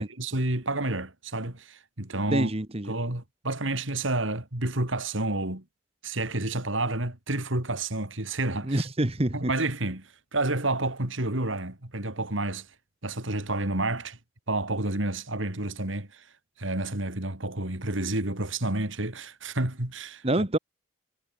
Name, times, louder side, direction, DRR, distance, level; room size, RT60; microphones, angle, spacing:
voice 1, 0.0-2.5 2.9-5.6 6.0-8.9 9.3-12.7 13.0-14.2 14.5-16.2 16.6-20.5, right 2 dB, 70° right, 3.5 m, -30 dB
voice 2, 2.3-2.9 8.6-9.5 20.2-20.6, right 1 dB, 30° right, 1.3 m, -26 dB
head